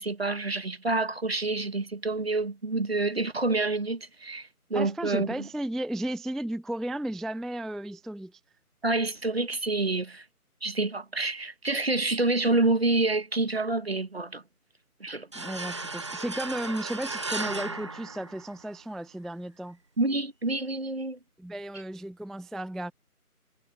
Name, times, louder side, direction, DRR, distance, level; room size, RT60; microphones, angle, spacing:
voice 1, 0.0-5.5 8.8-10.3 10.6-14.4 15.0-15.3 20.0-21.2, right 2 dB, 40° right, 2.0 m, -28 dB
voice 2, 4.7-8.4 15.3-19.8 21.4-22.9, right 1 dB, ahead, 0.6 m, -34 dB
sound 1, 15.3-18.9, right 3 dB, 20° right, 1.8 m, -35 dB
figure-of-eight pair, 165°, 46 cm